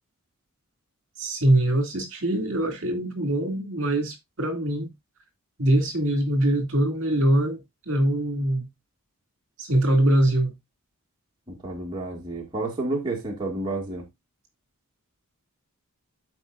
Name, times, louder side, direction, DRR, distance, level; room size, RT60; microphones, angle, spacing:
voice 1, 1.2-4.9 5.6-7.6 7.9-8.7 9.6-10.5, right 1 dB, 60° right, 2.4 m, -23 dB
voice 2, 11.5-14.1, right 2 dB, 20° right, 1.8 m, -30 dB
13.0 x 4.6 x 2.5 m
head